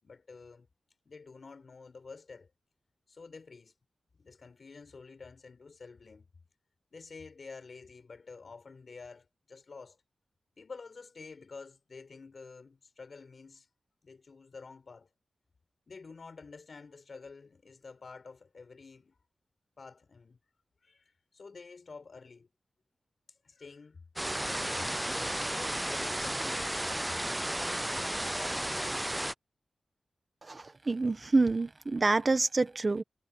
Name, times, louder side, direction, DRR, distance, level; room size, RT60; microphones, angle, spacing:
voice 1, 0.0-0.7 1.1-2.5 3.1-3.7 4.1-6.3 6.9-10.0 10.6-13.7 14.0-15.1 15.9-19.2 19.8-20.4 20.8-22.5 23.4-26.8, left 4 dB, 55° left, 5.4 m, -49 dB
sound 1, 24.2-29.3, right 1 dB, 10° right, 0.4 m, -33 dB
voice 2, 30.4-33.0, right 3 dB, 35° right, 1.4 m, -27 dB
wide cardioid pair, 85°, 0 cm